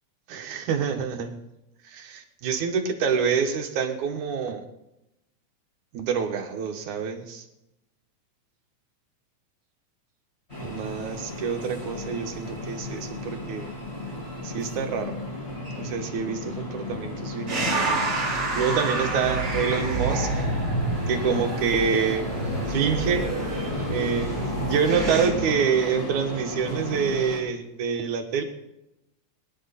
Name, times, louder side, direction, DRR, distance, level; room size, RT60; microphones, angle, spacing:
voice 1, 0.3-1.3 1.8-4.6 5.9-7.4 10.6-13.7 14.4-15.2 15.7-20.3 21.1-22.3 22.7-23.3 23.9-28.4, right 6 dB, 85° right, 5 dB, 2.9 m, -27 dB
sound 1, 10.5-27.4, left 1 dB, 20° left, 6.9 m, -34 dB
sound 2, 17.5-25.3, right 2 dB, 45° right, 4.5 m, -28 dB
23.0 x 11.0 x 4.2 m, 0.89 s
omnidirectional pair, 3.3 m